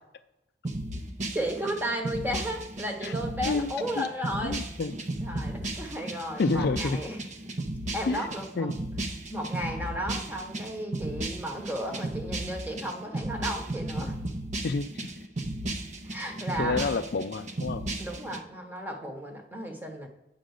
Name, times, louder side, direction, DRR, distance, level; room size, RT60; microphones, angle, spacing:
sound 1, 0.6-18.4, right 1 dB, 40° right, 0.7 m, -35 dB
voice 1, 1.3-4.6 5.2-7.2 7.9-8.7 9.3-14.2 16.0-17.0 18.0-20.1, equal, 10° right, 3 dB, 1.1 m, -34 dB
voice 2, 3.5-4.1 4.4-4.9 6.4-7.0 8.1-8.3 8.6-8.7 14.6-14.9 16.6-17.8, left 4 dB, 55° left, 10 dB, 0.4 m, -29 dB
9.2 x 3.8 x 6.5 m, 0.98 s
head